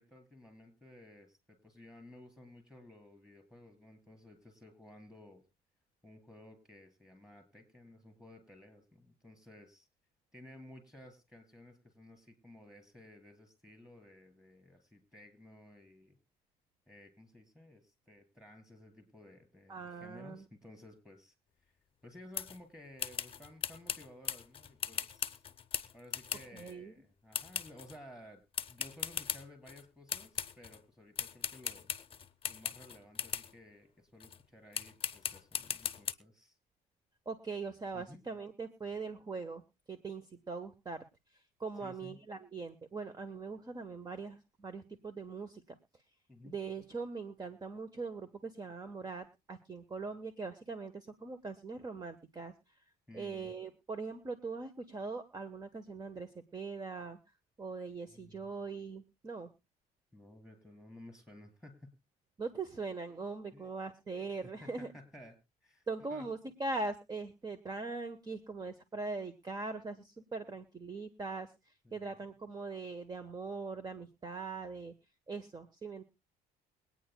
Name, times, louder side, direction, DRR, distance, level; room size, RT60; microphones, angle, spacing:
voice 1, 0.0-5.4 6.0-9.9 10.3-16.2 16.9-21.3 21.6-21.7 22.0-25.4 25.9-28.4 28.7-31.9 32.5-36.6 37.9-38.2 41.8-42.2 46.3-46.6 53.1-53.5 58.1-58.5 60.1-61.9 63.5-63.7 64.1-65.4 65.6-66.3 71.8-72.2, left 1 dB, 5° right, 4 dB, 4.3 m, -55 dB
voice 2, 19.7-20.4 26.5-26.9 37.2-39.6 39.9-41.0 41.3-45.8 46.4-52.8 53.1-57.2 57.6-59.5 62.4-64.9 65.9-74.9 75.3-76.0, right 4 dB, 25° right, 10 dB, 1.2 m, -41 dB
sound 1, 22.3-22.6 23.0-26.7 27.3-28.0 28.5-29.8 30.1-30.8 31.2-33.5 34.2-34.4 34.7-36.1, left 7 dB, 35° left, 0.8 m, -39 dB
23.0 x 9.4 x 2.2 m, 0.26 s
cardioid pair, 110°, 17 cm